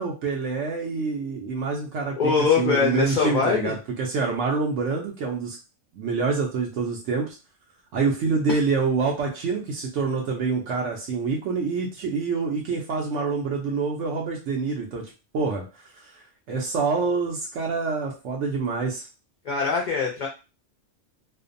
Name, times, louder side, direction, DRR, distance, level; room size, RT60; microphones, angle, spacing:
voice 1, 0.0-5.6 5.9-7.4 7.9-15.0 15.3-15.6 16.5-19.1, right 4 dB, 80° right, 0 dB, 0.9 m, -26 dB
voice 2, 2.2-3.7 8.5-8.6 19.4-20.3, left 5 dB, 60° left, -1 dB, 0.5 m, -23 dB
2.5 x 2.0 x 2.5 m, 0.30 s
omnidirectional pair, 1.2 m